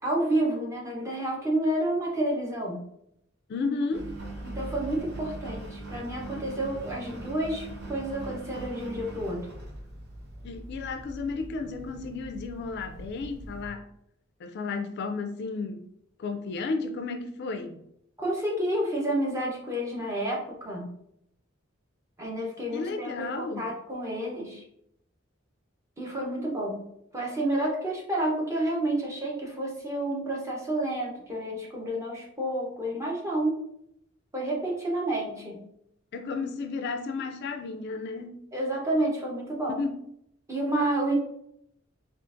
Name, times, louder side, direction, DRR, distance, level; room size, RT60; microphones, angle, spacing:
voice 1, 0.0-2.8 4.4-9.5 18.2-20.9 22.2-23.1 23.4-24.6 26.0-26.8 27.1-33.6 34.3-35.6 38.5-39.8 40.5-41.2, right 1 dB, 15° right, 0.8 m, -30 dB
voice 2, 3.5-4.1 10.4-13.8 14.4-15.8 16.2-17.8 22.7-23.6 36.1-38.4 39.7-40.0, left 4 dB, 55° left, 0.3 m, -33 dB
Engine, 3.9-13.7, right 1 dB, 60° right, 0.9 m, -41 dB
3.8 x 2.4 x 2.5 m
head